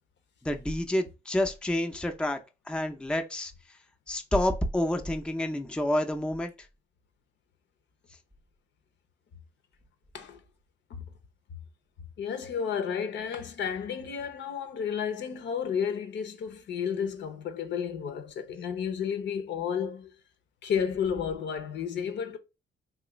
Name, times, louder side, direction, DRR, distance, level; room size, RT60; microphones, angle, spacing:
voice 1, 0.4-2.4 2.7-3.5 4.1-6.5, left 1 dB, 5° left, 0.5 m, -28 dB
voice 2, 12.2-20.1 20.6-22.4, left 7 dB, 65° left, 0.6 m, -32 dB
3.1 x 2.4 x 3.0 m
cardioid pair, 90°, 20 cm